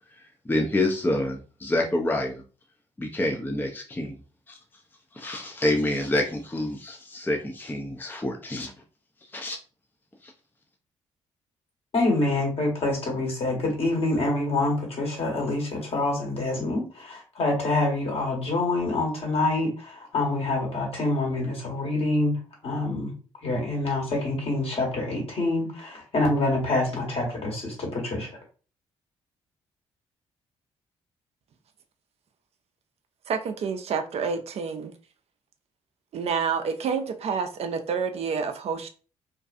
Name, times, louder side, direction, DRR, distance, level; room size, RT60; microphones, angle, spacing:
voice 1, 0.5-2.4 3.0-4.1 4.5-4.6 5.1-8.7 9.3-9.6 10.2-10.3, left 1 dB, 15° left, 0.5 m, -27 dB
voice 2, 11.9-22.3 22.6-23.1 23.4-28.3, left 2 dB, 55° left, 1.3 m, -26 dB
voice 3, 33.3-34.9 36.1-38.9, right 6 dB, 55° right, 0.4 m, -28 dB
2.6 x 2.3 x 2.4 m
hypercardioid pair, 50°, 12 cm